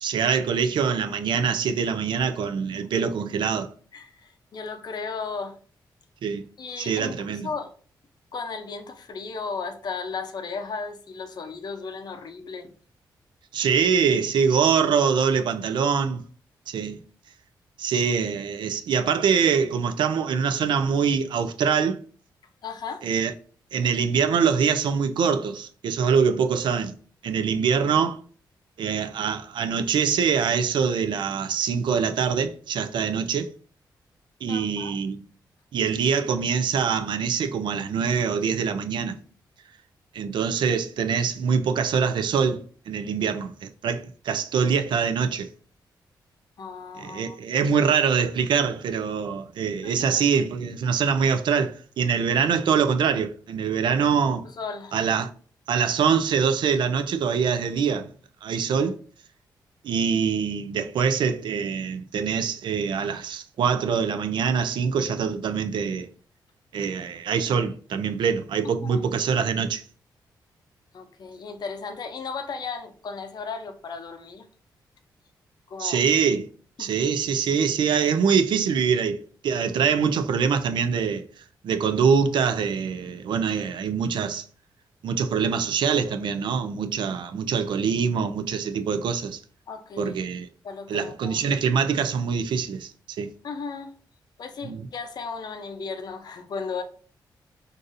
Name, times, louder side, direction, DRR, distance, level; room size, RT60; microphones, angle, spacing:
voice 1, 0.0-3.7 6.2-6.4 6.8-7.5 13.5-16.2 16.7-17.0 17.8-22.0 23.0-23.3 23.7-27.0 27.2-28.2 28.8-33.5 34.4-35.2 35.7-39.2 40.1-45.5 47.0-54.4 54.9-55.3 55.7-58.1 58.4-59.0 59.8-66.1 66.7-69.8 75.8-76.5 76.8-81.3 81.6-84.4 85.0-89.4 90.0-90.5 90.9-92.9 93.2-93.3 94.6-94.9, right 6 dB, 75° right, 0.4 m, -24 dB
voice 2, 3.9-5.6 6.6-7.7 8.3-12.7 22.6-23.0 34.5-35.0 46.6-47.4 49.8-50.2 52.4-52.5 54.4-55.0 58.8-58.9 68.6-69.0 70.9-74.5 75.7-76.0 76.8-76.9 87.3-87.7 89.7-90.2 90.6-91.4 93.4-93.9 94.4-96.8, left 5 dB, 60° left, 0.6 m, -35 dB
3.9 x 2.6 x 2.5 m
cardioid pair, 75°, 8 cm